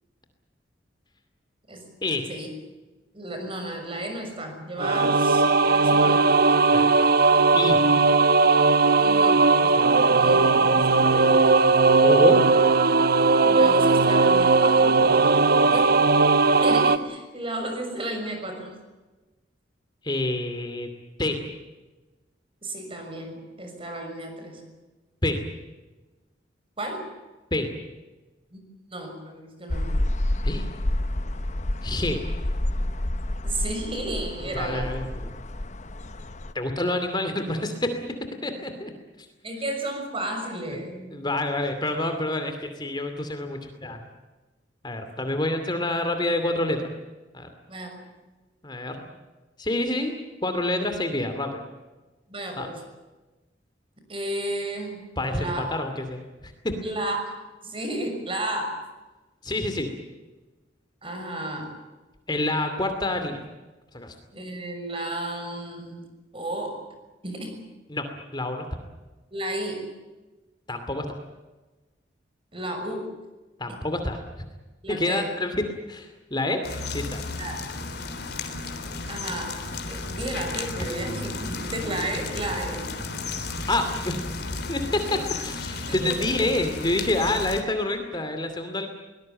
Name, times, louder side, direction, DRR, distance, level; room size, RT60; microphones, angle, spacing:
voice 1, 3.1-6.4 9.0-11.4 13.4-15.0 15.7-16.0 16.6-18.7 22.6-24.7 26.8-27.1 28.5-28.6 28.9-30.0 33.4-34.9 39.4-41.1 47.7-48.1 52.3-52.8 54.1-55.0 55.3-55.6 56.8-57.3 57.6-58.8 61.0-61.7 64.3-66.1 66.3-66.8 67.2-67.6 69.3-69.8 72.5-73.1 73.7-73.8 74.8-75.3 77.4-77.6 79.1-79.6 79.9-82.9 85.1-85.2 85.8-86.2, right 1 dB, 30° right, 5 dB, 6.4 m, -33 dB
sound 1, 4.8-17.0, right 3 dB, 55° right, 1.1 m, -18 dB
voice 2, 12.0-12.4 20.0-20.9 21.2-21.4 25.2-25.4 27.5-27.7 30.4-30.7 31.8-32.2 34.4-35.3 36.5-38.1 38.4-38.9 41.1-44.0 44.8-46.8 47.3-47.5 48.6-49.1 49.6-50.1 50.4-51.6 52.6-52.7 55.2-56.8 59.4-59.9 62.3-63.4 63.9-64.1 67.9-68.1 68.3-68.6 70.7-71.1 73.6-74.2 74.9-76.6 76.9-77.2 83.7-84.2 84.7-88.9, left 1 dB, 25° left, 7 dB, 2.5 m, -27 dB
sound 2, 29.7-36.5, left 1 dB, 40° left, 1.0 m, -29 dB
sound 3, 76.6-87.6, left 3 dB, 60° left, 3.5 m, -33 dB
23.0 x 20.0 x 8.9 m, 1.2 s
head